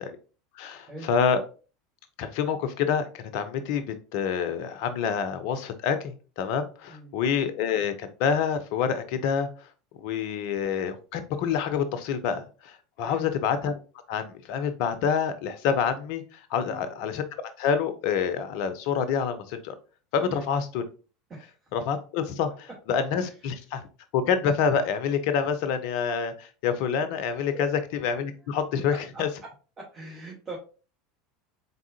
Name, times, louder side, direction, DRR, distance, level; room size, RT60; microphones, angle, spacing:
voice 1, 0.6-1.4 2.2-9.5 10.0-13.8 14.1-17.2 17.6-19.7 20.1-20.8 21.7-23.8 24.1-29.3, left 7 dB, 60° left, 0.6 m, -27 dB
voice 2, 13.0-13.3 16.6-16.9 20.2-20.5 21.3-21.6 23.2-23.3 27.5-27.7 28.9-29.2 29.8-30.6, right 2 dB, 35° right, 1.4 m, -41 dB
4.0 x 3.6 x 2.7 m
figure-of-eight pair, 75°, 0 cm